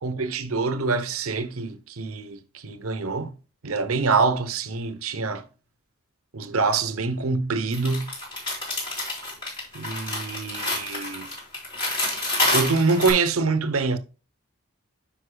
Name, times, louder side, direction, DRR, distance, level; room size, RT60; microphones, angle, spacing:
voice 1, 0.0-3.3 3.6-5.4 6.3-8.1 9.7-11.3 12.5-14.0, right 4 dB, 90° right, 0.9 m, -25 dB
sound 1, 7.7-13.1, left 2 dB, 25° left, 4.2 m, -28 dB
10.0 x 5.3 x 2.3 m
head